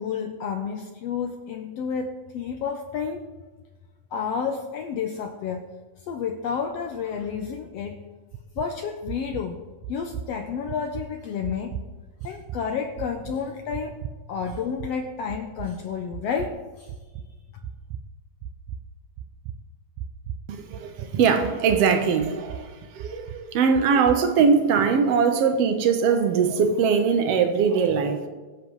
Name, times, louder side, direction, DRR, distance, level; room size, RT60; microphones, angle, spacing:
voice 1, 0.0-3.2 4.1-5.7 6.1-8.0 8.5-9.6 9.9-11.8 12.2-14.0 14.3-16.9, left 6 dB, 80° left, 4 dB, 1.5 m, -30 dB
sound 1, 8.3-8.7 9.1-9.5 9.8-10.3 10.7-11.0 11.4-11.9 12.2-12.6 13.0-13.4 13.7-14.1 14.5-14.9 15.3-15.7 16.1-16.5 16.9-17.3 17.6-18.0 18.4-18.8 19.2-19.6 20.0-20.5 20.7-21.2 21.4-21.8 22.2-22.6 23.0-23.4 23.7-24.2, right 9 dB, 80° right, 1.6 m, -36 dB
voice 2, 20.5-28.3, right 6 dB, 65° right, 6 dB, 1.8 m, -21 dB
22.5 x 7.5 x 3.2 m, 1.3 s
omnidirectional pair, 3.6 m